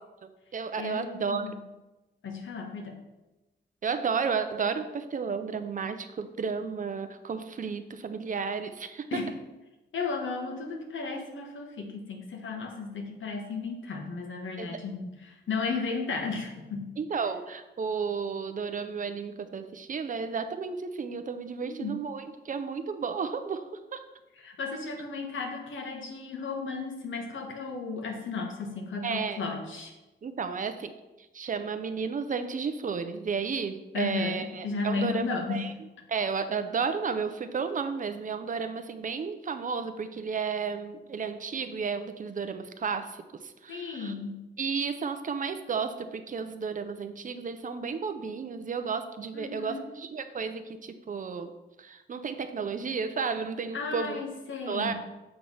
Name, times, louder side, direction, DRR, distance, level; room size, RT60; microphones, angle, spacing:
voice 1, 0.0-1.5 3.8-9.2 14.6-14.8 17.0-23.6 23.9-24.0 29.0-29.4 30.2-30.9 31.3-35.7 36.1-44.1 44.6-54.2 54.7-54.9, right 5 dB, 45° right, 9 dB, 0.4 m, -33 dB
voice 2, 0.8-1.6 2.2-3.0 9.1-9.3 9.9-16.9 21.6-22.0 24.4-29.9 33.9-35.7 43.7-44.4 49.3-49.9 53.7-54.9, left 4 dB, 90° left, 1 dB, 1.2 m, -34 dB
7.1 x 3.2 x 5.4 m, 1.0 s
wide cardioid pair, 155°, 20 cm